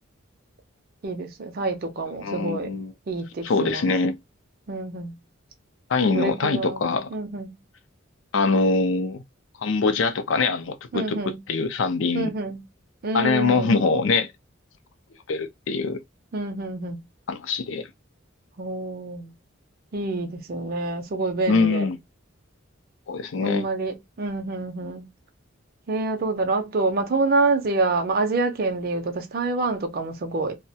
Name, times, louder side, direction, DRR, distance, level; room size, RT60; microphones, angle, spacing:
voice 1, 1.0-2.7 3.1-3.9 4.7-5.2 6.1-6.8 7.1-7.6 10.9-11.4 12.1-12.6 13.0-13.8 16.3-17.0 18.6-19.3 19.9-21.8 23.4-25.1 25.9-30.6, right 3 dB, 45° right, 0.5 m, -27 dB
voice 2, 2.2-2.9 3.4-4.2 5.9-7.1 8.3-9.2 9.6-12.3 13.1-14.3 15.3-16.0 17.3-17.9 21.5-22.0 23.1-23.7, left 4 dB, 65° left, 0.4 m, -23 dB
2.2 x 2.1 x 2.6 m
head